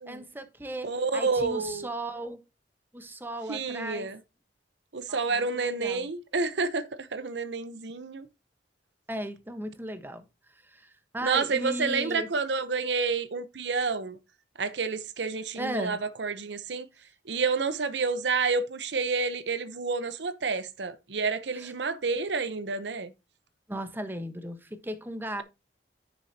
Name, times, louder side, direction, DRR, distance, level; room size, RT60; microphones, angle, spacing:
voice 1, 0.1-2.4 2.9-4.1 5.1-6.1 9.1-10.2 10.6-12.3 15.6-16.0 21.5-21.7 23.7-25.4, right 1 dB, 10° right, 1.1 m, -36 dB
voice 2, 0.8-1.9 3.5-4.2 4.9-8.3 11.2-14.2 14.6-16.9 17.3-23.1, right 4 dB, 85° right, 0.8 m, -29 dB
10.0 x 6.8 x 2.8 m
head